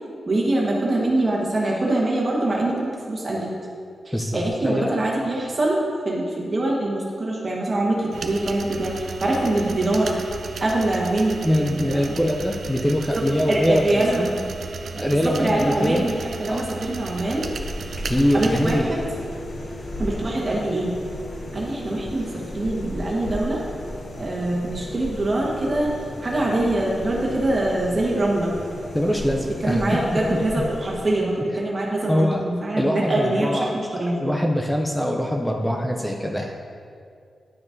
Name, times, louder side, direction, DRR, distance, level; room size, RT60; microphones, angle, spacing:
voice 1, 0.3-3.5 4.0-8.9 9.2-10.2 10.6-12.0 13.1-14.2 15.2-17.5 18.3-19.0 20.0-20.9 21.5-23.6 24.2-25.9 26.2-28.5 29.6-34.2, right 1 dB, 30° right, -4 dB, 1.2 m, -24 dB
voice 2, 4.1-5.0 11.4-14.5 14.9-16.1 16.5-16.7 18.0-18.9 28.9-30.4 32.1-32.4 32.8-33.7 34.2-36.7, equal, 5° left, 1 dB, 0.4 m, -23 dB
sound 1, 8.1-18.8, right 4 dB, 60° right, 0.5 m, -35 dB
sound 2, 16.8-31.5, left 1 dB, 50° left, 0.7 m, -35 dB
10.5 x 6.0 x 2.6 m, 2.3 s
wide cardioid pair, 175°, 0 cm